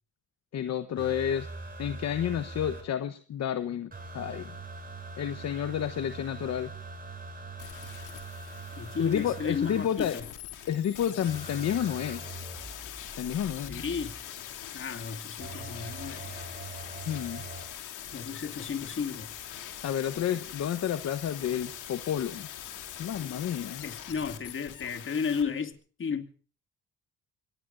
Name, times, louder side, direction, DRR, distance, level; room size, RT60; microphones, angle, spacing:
voice 1, 0.5-1.5 1.8-4.6 5.2-6.7 9.0-10.2 10.7-12.3 13.2-13.8 17.1-17.4 19.8-22.5 23.0-23.8, left 9 dB, 60° left, 1.1 m, -30 dB
sound 1, 1.0-2.8 3.9-9.9 11.3-14.2 15.4-17.6 18.8-18.9, right 3 dB, 30° right, 7.8 m, -42 dB
sound 2, 7.6-25.4 25.7-25.8, left 10 dB, 85° left, 3.2 m, -43 dB
voice 2, 8.8-10.3 13.5-14.2 14.7-16.4 18.1-19.3 23.2-23.4 23.8-26.3, left 6 dB, 40° left, 2.2 m, -34 dB
25.0 x 19.0 x 2.6 m
cardioid pair, 90°, 30 cm